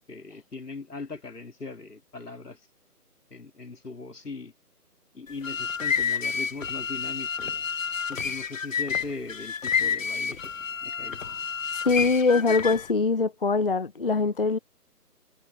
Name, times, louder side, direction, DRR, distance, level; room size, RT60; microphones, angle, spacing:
voice 1, 0.1-2.6 3.3-4.5 5.1-7.6 8.1-11.2, left 3 dB, 75° left, 4.1 m, -40 dB
sound 1, 5.3-12.9, left 6 dB, 55° left, 1.4 m, -29 dB
voice 2, 11.8-14.6, left 4 dB, 35° left, 0.6 m, -23 dB
figure-of-eight pair, 155°, 47 cm